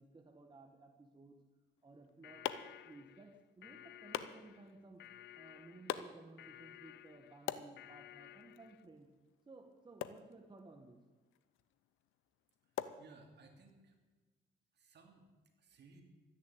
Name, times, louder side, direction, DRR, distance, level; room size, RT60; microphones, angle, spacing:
voice 1, 0.0-1.4 1.8-2.4 2.8-9.1 9.4-11.0, right 2 dB, 25° right, 3 dB, 1.6 m, -57 dB
sound 1, 1.8-13.7, left 11 dB, 90° left, 0.8 m, -48 dB
sound 2, 2.2-8.8, left 13 dB, 60° left, 0.4 m, -56 dB
voice 2, 12.6-14.0 14.7-15.3 15.6-16.0, right 3 dB, 60° right, 4 dB, 2.9 m, -61 dB
13.5 x 10.0 x 8.4 m, 1.3 s
cardioid pair, 90°, 20 cm